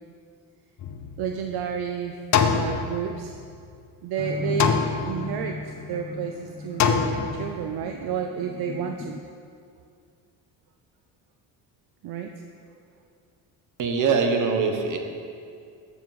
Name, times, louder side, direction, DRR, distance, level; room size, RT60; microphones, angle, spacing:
sound 1, 0.8-1.7 2.3-3.6 4.6-5.6 6.8-7.8, left 6 dB, 45° left, 0.7 m, -25 dB
voice 1, 1.2-2.2 2.5-3.4 4.0-9.2 12.0-12.3, right 7 dB, 65° right, 5 dB, 0.7 m, -31 dB
sound 2, 4.2-9.2, left 3 dB, 20° left, 0.3 m, -35 dB
voice 2, 13.8-15.0, right 5 dB, 45° right, 4 dB, 1.2 m, -22 dB
13.0 x 7.1 x 4.1 m, 2.4 s
cardioid pair, 120°, 41 cm